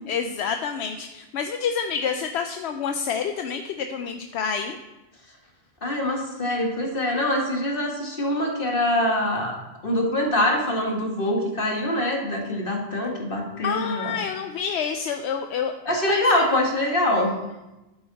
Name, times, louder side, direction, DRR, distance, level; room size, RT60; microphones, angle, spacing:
voice 1, 0.1-4.8 13.6-15.7 16.1-16.5, left 6 dB, 80° left, 6 dB, 0.9 m, -28 dB
voice 2, 5.8-9.6 9.8-14.2 15.9-17.4, left 1 dB, 55° left, 1 dB, 1.9 m, -24 dB
10.5 x 8.8 x 4.1 m, 1.0 s
omnidirectional pair, 1.1 m